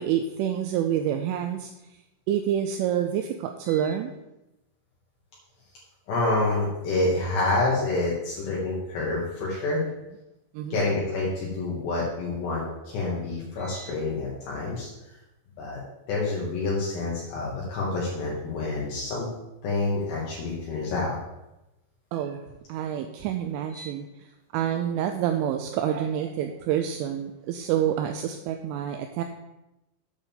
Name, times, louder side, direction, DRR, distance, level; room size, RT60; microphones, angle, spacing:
voice 1, 0.0-1.7 2.3-4.1 10.5-10.8 22.1-22.4 22.7-29.2, right 10 dB, 85° right, 6 dB, 2.9 m, -28 dB
voice 2, 6.1-9.8 10.7-14.9 15.6-15.8 16.1-19.3 19.6-21.2 23.7-23.9, left 2 dB, 65° left, -5 dB, 3.3 m, -28 dB
8.6 x 4.1 x 7.1 m, 0.95 s
omnidirectional pair, 5.9 m